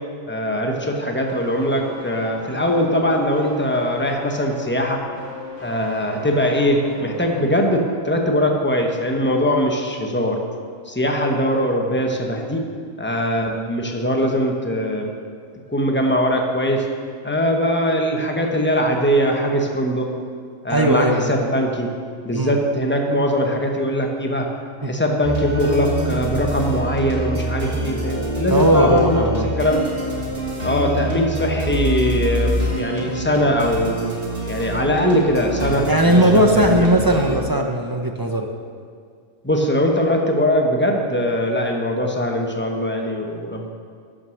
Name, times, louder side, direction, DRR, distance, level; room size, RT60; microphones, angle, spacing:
voice 1, 0.3-5.0 5.6-10.4 10.9-12.6 13.0-15.1 15.7-16.8 17.2-20.1 20.6-21.9 22.2-24.5 24.8-29.2 29.6-29.8 30.6-34.1 34.5-36.9 39.4-43.7, equal, 10° left, 1 dB, 0.9 m, -21 dB
sound 1, 1.3-8.0 8.2-8.4, left 1 dB, 70° left, 2.1 m, -38 dB
voice 2, 20.7-21.3 22.3-22.6 24.8-24.9 28.5-29.5 35.9-38.5, right 1 dB, 30° right, 3 dB, 0.4 m, -18 dB
sound 2, 25.2-37.4, right 1 dB, 50° right, 1.6 m, -25 dB
10.5 x 6.3 x 6.4 m, 2.1 s
omnidirectional pair, 1.3 m